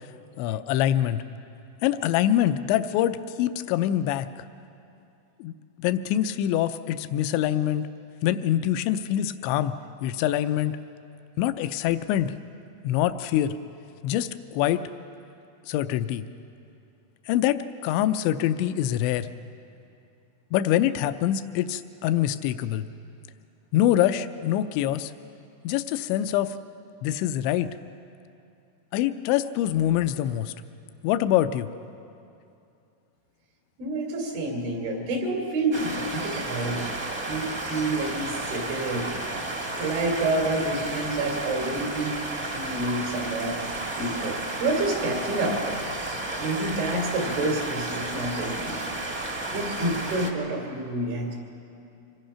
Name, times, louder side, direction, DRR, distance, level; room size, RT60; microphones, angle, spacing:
voice 1, 0.4-1.2 1.8-4.3 5.4-7.8 8.2-9.8 10.0-10.8 11.4-12.3 12.8-13.5 14.0-14.8 15.7-16.2 17.3-19.3 20.5-22.9 23.7-25.1 25.6-26.5 27.0-27.7 28.9-30.5 31.0-31.7, left 12 dB, 85° left, 11 dB, 2.9 m, -25 dB
voice 2, 33.8-36.9 37.3-39.1 39.8-42.2 42.5-43.6 44.0-45.8 46.4-48.9 49.5-51.3, right 2 dB, 85° right, 1 dB, 5.5 m, -28 dB
sound 1, 35.7-50.3, right 2 dB, 45° right, 0.8 m, -32 dB
26.0 x 20.0 x 5.7 m, 2.6 s
omnidirectional pair, 5.1 m